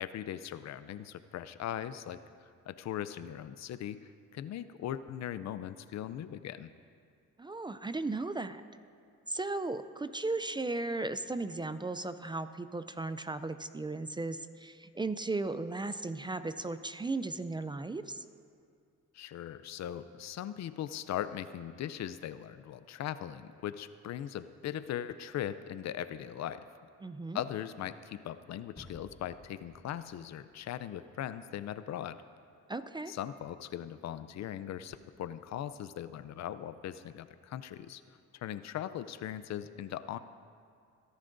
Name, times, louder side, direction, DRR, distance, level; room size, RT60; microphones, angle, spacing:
voice 1, 0.0-2.2 2.7-4.0 4.3-6.7 19.1-26.6 27.3-32.2 33.1-38.0 38.3-40.2, left 10 dB, 60° left, 13 dB, 0.5 m, -39 dB
voice 2, 7.4-8.6 9.3-18.2 27.0-27.4 32.7-33.1, right 3 dB, 15° right, 11 dB, 0.4 m, -36 dB
sound 1, 28.8-31.3, left 1 dB, 15° left, 2.2 m, -56 dB
23.5 x 11.5 x 2.6 m, 2.3 s
cardioid pair, 90°, 30 cm